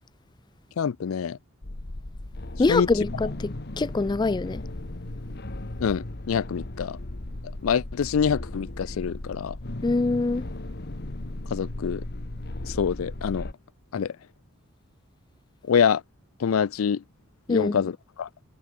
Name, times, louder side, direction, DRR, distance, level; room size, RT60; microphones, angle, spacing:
voice 1, 0.8-1.4 2.7-2.9 5.8-7.0 7.6-9.6 11.5-12.0 12.6-13.5 13.9-14.1 15.6-16.0 16.4-17.0 17.5-18.3, left 7 dB, 85° left, 0.4 m, -25 dB
sound 1, 1.6-13.5, left 1 dB, 55° left, 1.5 m, -36 dB
voice 2, 2.6-4.6 9.8-10.5 17.5-17.8, left 3 dB, 20° left, 0.4 m, -24 dB
head